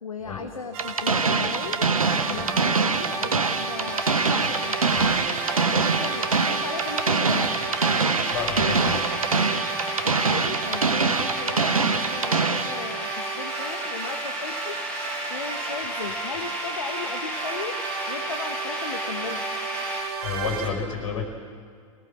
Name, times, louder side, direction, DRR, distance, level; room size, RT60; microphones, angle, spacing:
voice 1, 0.0-5.1 5.6-7.5 10.0-14.8 15.3-17.8 18.1-19.4, left 5 dB, 80° left, 7 dB, 1.2 m, -36 dB
sound 1, 0.7-20.7, right 5 dB, 50° right, 2.8 m, -33 dB
sound 2, 0.8-12.8, right 4 dB, 85° right, 1.1 m, -24 dB
sound 3, 2.7-20.0, left 1 dB, 10° left, 6.4 m, -35 dB
voice 2, 8.3-9.0 20.2-21.2, left 6 dB, 65° left, 3 dB, 5.6 m, -30 dB
24.5 x 18.5 x 7.4 m, 2.2 s
figure-of-eight pair, 85°, 17 cm